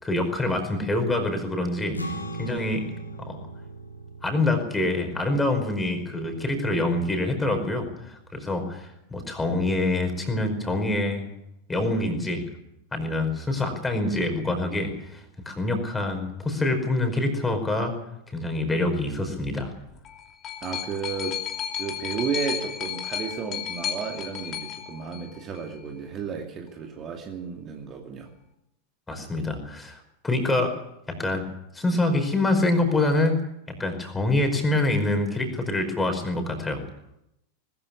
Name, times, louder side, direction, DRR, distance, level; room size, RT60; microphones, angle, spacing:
voice 1, 0.0-2.9 3.2-3.4 4.2-11.3 11.7-12.4 12.9-18.0 18.3-19.7 29.1-30.8 31.1-31.5 31.7-36.8, left 2 dB, 10° left, 5 dB, 5.1 m, -26 dB
sound 1, 1.9-8.6, right 2 dB, 85° left, 3.0 m, -40 dB
sound 2, 19.8-25.8 26.7-26.8, left 9 dB, 30° left, 2.9 m, -34 dB
voice 2, 20.6-21.4 21.7-28.3, right 6 dB, 30° right, 2 dB, 2.6 m, -33 dB
20.5 x 14.5 x 9.8 m, 0.82 s
figure-of-eight pair, 90°, 0 cm